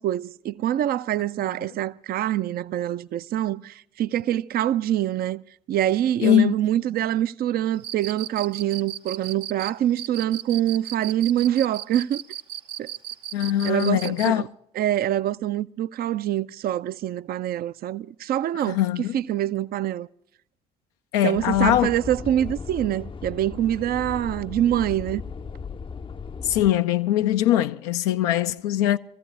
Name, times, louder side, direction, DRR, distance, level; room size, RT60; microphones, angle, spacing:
voice 1, 0.0-5.4 5.7-12.2 12.8-12.9 13.6-14.5 14.8-18.8 19.1-20.1 21.2-25.2, right 12 dB, 50° right, 0.5 m, -25 dB
voice 2, 6.2-6.5 13.3-14.4 18.7-19.2 21.1-21.9 26.4-29.0, left 12 dB, 70° left, 0.5 m, -21 dB
Cricket, 7.8-14.4, right 11 dB, 75° right, 0.9 m, -35 dB
sound 1, 21.3-26.7, left 5 dB, 25° left, 0.5 m, -36 dB
23.0 x 15.0 x 3.3 m
figure-of-eight pair, 45°, 20 cm